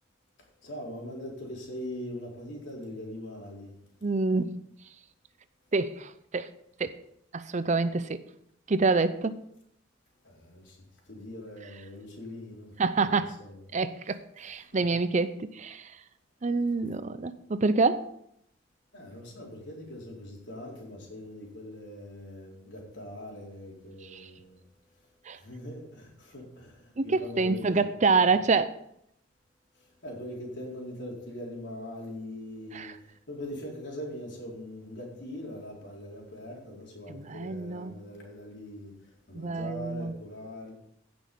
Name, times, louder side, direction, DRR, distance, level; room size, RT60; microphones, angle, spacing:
voice 1, 0.6-3.8 10.2-13.1 13.4-13.6 14.7-14.8 18.9-24.6 25.3-28.3 29.7-40.7, left 1 dB, 70° left, 4.2 m, -42 dB
voice 2, 4.0-4.6 5.7-6.5 6.8-7.0 7.3-8.2 8.7-9.4 12.8-13.4 13.7-15.9 16.4-18.1 24.0-24.3 25.3-25.4 27.0-28.8 32.7-33.0 37.1-37.9 39.3-40.1, right 4 dB, 40° right, 0.6 m, -27 dB
15.5 x 6.2 x 5.4 m
head